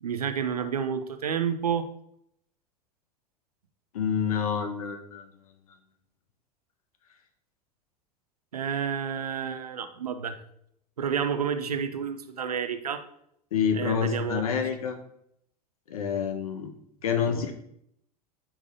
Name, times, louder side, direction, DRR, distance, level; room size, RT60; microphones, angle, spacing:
voice 1, 0.0-1.9 8.5-10.4 11.0-13.0 13.7-14.4 17.3-17.5, right 7 dB, 75° right, 9 dB, 0.7 m, -30 dB
voice 2, 3.9-5.3 13.5-15.0 15.9-16.7 17.0-17.5, left 7 dB, 65° left, 6 dB, 1.1 m, -27 dB
10.0 x 5.1 x 3.6 m, 0.74 s
figure-of-eight pair, 75°, 20 cm